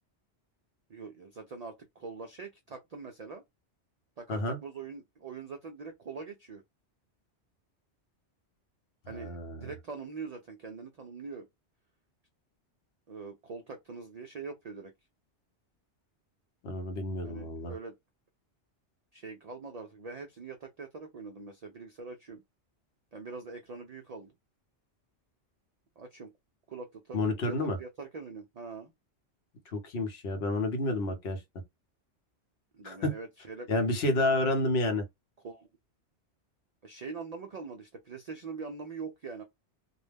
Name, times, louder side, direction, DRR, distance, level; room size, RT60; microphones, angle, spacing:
voice 1, 0.9-3.4 4.2-6.6 9.1-11.5 13.1-14.9 17.2-17.9 19.1-22.4 23.1-24.3 26.0-26.3 26.7-28.9 32.7-33.7 35.4-35.7 36.8-39.4, right 4 dB, 65° right, 0.4 m, -43 dB
voice 2, 9.1-9.7 16.6-17.7 27.1-27.8 29.7-31.4 32.8-33.2 33.7-35.0, left 2 dB, 65° left, 0.9 m, -30 dB
2.3 x 2.1 x 3.2 m
omnidirectional pair, 1.2 m